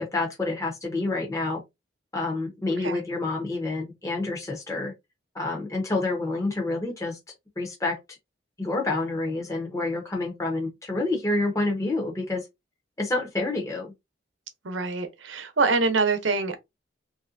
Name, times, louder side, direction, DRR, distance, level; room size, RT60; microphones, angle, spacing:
voice 1, 0.0-1.6 2.1-4.9 5.3-7.2 7.6-7.9 8.6-12.4 13.0-13.9, left 2 dB, 15° left, 0.7 m, -28 dB
voice 2, 14.6-16.6, right 4 dB, 80° right, 0.7 m, -25 dB
3.2 x 2.6 x 2.6 m
head